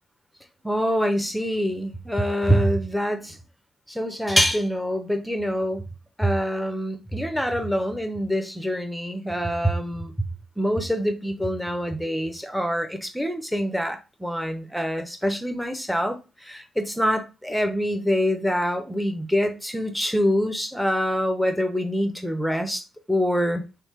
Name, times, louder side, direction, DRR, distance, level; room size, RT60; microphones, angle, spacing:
voice 1, 0.6-3.4 3.9-5.8 6.2-10.1 10.6-16.2 16.4-22.8 23.1-23.6, equal, 5° left, 0.8 m, -25 dB
3.1 x 2.0 x 3.2 m
hypercardioid pair, 45°, 0 cm